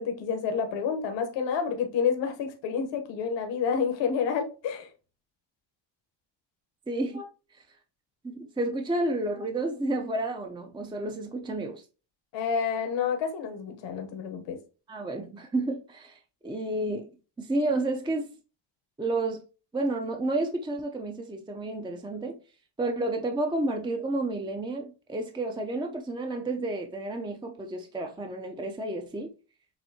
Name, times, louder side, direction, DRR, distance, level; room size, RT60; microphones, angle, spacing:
voice 1, 0.0-4.9 12.3-14.6, left 6 dB, 75° left, 1.1 m, -29 dB
voice 2, 6.9-7.3 7.5-7.6 8.2-11.8 14.9-17.1 17.4-18.3 19.0-19.4 19.7-22.4 22.8-29.3, right 2 dB, 10° right, 0.6 m, -31 dB
7.2 x 2.7 x 2.8 m
cardioid pair, 110°, 44 cm